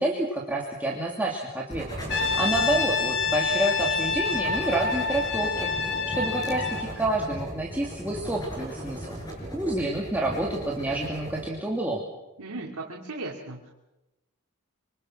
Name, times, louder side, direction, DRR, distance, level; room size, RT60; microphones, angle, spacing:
voice 1, 0.0-9.2 9.5-12.0, right 1 dB, 10° right, -3 dB, 2.8 m, -29 dB
sound 1, 1.7-11.5, right 1 dB, 20° left, 6.8 m, -37 dB
Brass instrument, 2.1-6.9, left 5 dB, 55° left, 2.5 m, -27 dB
voice 2, 12.4-13.7, right 2 dB, 90° right, -2 dB, 2.9 m, -37 dB
26.5 x 25.0 x 6.2 m, 1.0 s
head